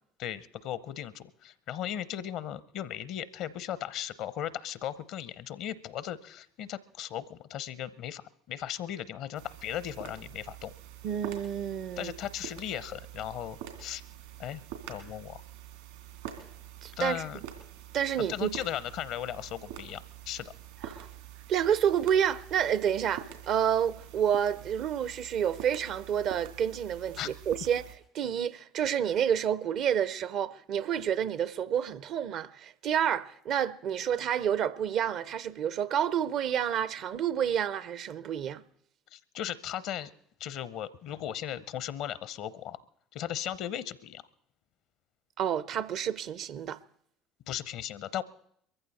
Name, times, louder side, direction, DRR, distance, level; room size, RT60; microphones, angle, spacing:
voice 1, 0.2-10.7 12.0-14.0 14.4-14.6 14.9-15.4 17.0-17.4 18.3-20.5 27.2-27.3 39.1-40.1 40.4-42.8 43.1-44.2 47.5-48.2, left 10 dB, 60° left, 0.7 m, -37 dB
sound 1, 9.3-28.0, right 10 dB, 80° right, 2.9 m, -46 dB
voice 2, 11.0-12.1 16.8-17.4 17.9-18.5 20.8-21.1 21.5-27.9 28.1-38.6 45.4-46.8, right 9 dB, 55° right, 0.6 m, -29 dB
22.5 x 14.5 x 4.2 m
hypercardioid pair, 65°, 0 cm